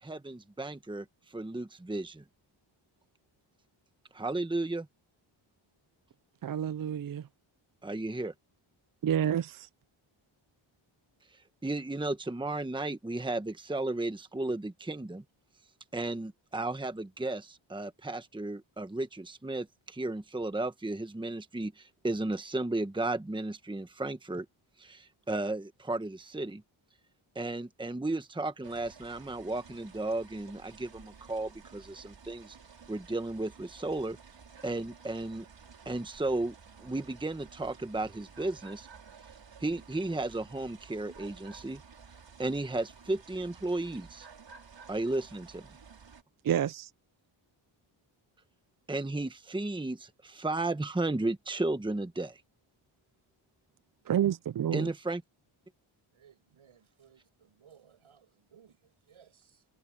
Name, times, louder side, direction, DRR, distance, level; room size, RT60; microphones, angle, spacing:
voice 1, 0.0-2.2 4.1-4.9 7.8-8.3 11.6-15.2 15.9-24.4 24.8-26.6 27.3-32.6 32.9-34.2 34.6-35.4 35.8-36.5 36.8-38.9 39.6-41.8 42.4-44.3 44.9-45.7 48.9-52.4 54.7-55.2, right 2 dB, 10° right, 1.2 m, -34 dB
voice 2, 6.4-7.2 9.0-9.7 46.4-46.9 54.1-54.9, right 10 dB, 45° right, 0.5 m, -29 dB
sound 1, 28.6-46.2, right 6 dB, 60° right, 5.8 m, -53 dB
voice 3, 56.1-59.7, right 8 dB, 75° right, 7.9 m, -61 dB
wide cardioid pair, 95°, 49 cm